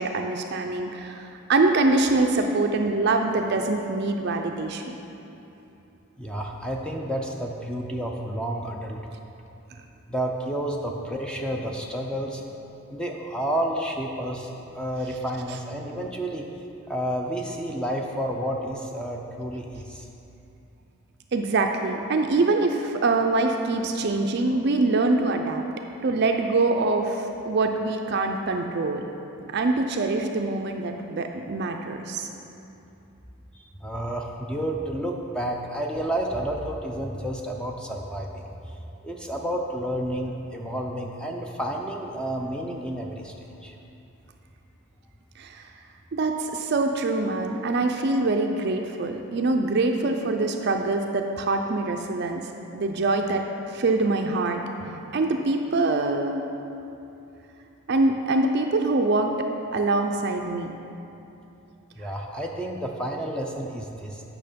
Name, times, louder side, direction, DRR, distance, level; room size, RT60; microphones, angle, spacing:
voice 1, 0.0-4.9 21.3-25.6 26.0-29.0 29.5-32.3 45.4-45.7 46.1-52.5 52.7-53.4 53.7-56.4 57.9-59.3 59.7-60.7, right 3 dB, 50° right, 4 dB, 0.4 m, -24 dB
voice 2, 6.2-9.0 10.1-12.4 12.9-14.5 14.8-16.5 16.9-20.1 33.8-38.7 39.0-43.8 62.0-64.2, right 1 dB, 5° left, 0 dB, 0.5 m, -30 dB
8.9 x 6.1 x 5.1 m, 2.8 s
head